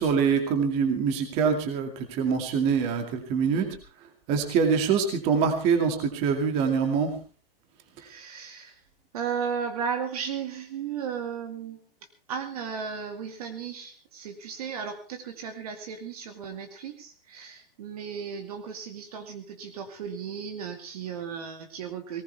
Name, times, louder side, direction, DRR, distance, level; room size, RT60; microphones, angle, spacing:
voice 1, 0.0-3.7 4.3-7.1, right 6 dB, 20° right, 5 dB, 2.2 m, -24 dB
voice 2, 8.0-8.8 9.1-11.8 12.3-22.2, right 7 dB, 40° right, 6 dB, 2.1 m, -35 dB
19.5 x 19.0 x 3.4 m, 0.35 s
hypercardioid pair, 175°, 29 cm